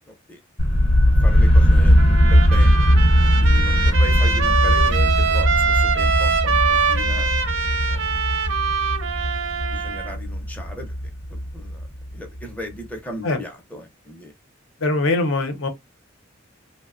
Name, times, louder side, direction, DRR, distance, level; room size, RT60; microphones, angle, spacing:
voice 1, 0.1-0.4 1.2-2.8 3.4-7.3 7.9-8.2 9.7-10.9 11.3-11.9 12.1-14.3, left 1 dB, 10° left, 0.5 m, -37 dB
sound 1, 0.6-12.4, equal, 35° left, 0.8 m, -18 dB
Trumpet, 2.0-10.2, right 5 dB, 70° right, 0.6 m, -23 dB
voice 2, 14.8-15.7, left 2 dB, 70° left, 0.7 m, -22 dB
2.7 x 2.1 x 2.4 m
head